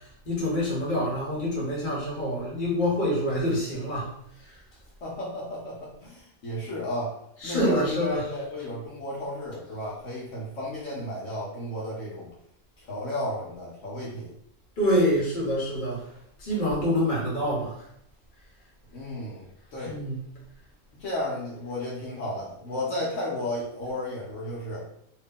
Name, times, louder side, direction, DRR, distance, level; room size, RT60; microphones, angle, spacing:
voice 1, 0.2-4.1 7.4-8.2 14.8-16.0 16.4-17.7 19.8-20.1, equal, 40° left, -5 dB, 1.3 m, -26 dB
voice 2, 5.0-7.2 7.4-12.3 12.8-14.3 18.9-19.4 19.7-20.0 21.0-24.9, left 1 dB, 75° left, -4 dB, 1.2 m, -33 dB
2.8 x 2.6 x 3.6 m, 0.73 s
omnidirectional pair, 1.3 m